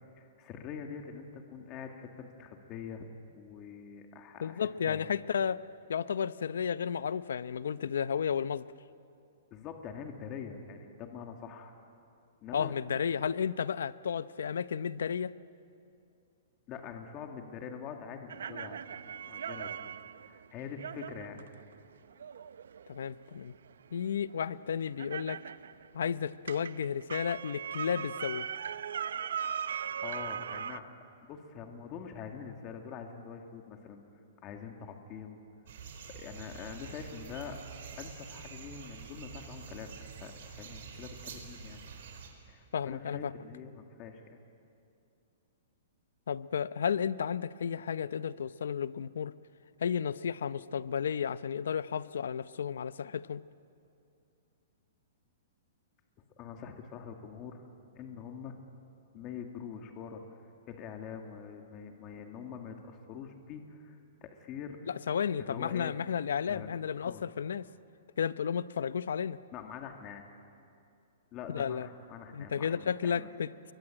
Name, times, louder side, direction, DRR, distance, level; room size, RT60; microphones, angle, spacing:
voice 1, 0.2-3.1 3.3-5.2 9.5-11.7 12.4-12.7 16.7-21.4 30.0-31.0 31.3-34.0 34.4-35.4 36.1-37.6 38.0-39.9 40.2-41.8 42.5-44.4 56.4-57.6 57.9-58.6 59.1-60.4 60.7-64.8 65.4-66.0 66.5-66.7 67.0-67.2 69.5-70.2 71.3-73.3, left 7 dB, 25° left, 4 dB, 2.0 m, -44 dB
voice 2, 4.4-5.6 5.9-8.7 12.5-15.3 22.9-23.5 23.9-25.4 25.9-28.5 42.7-43.3 46.3-49.3 49.8-53.4 64.9-67.7 68.2-69.4 71.5-71.9 72.3-73.5, left 7 dB, 85° left, 16 dB, 0.7 m, -33 dB
sound 1, 18.3-26.0 26.4-30.8, right 8 dB, 85° right, 0.8 m, -39 dB
sound 2, 35.7-42.3, right 6 dB, 60° right, 4.7 m, -47 dB
29.0 x 23.0 x 8.9 m, 2.6 s
hypercardioid pair, 160°, 0 cm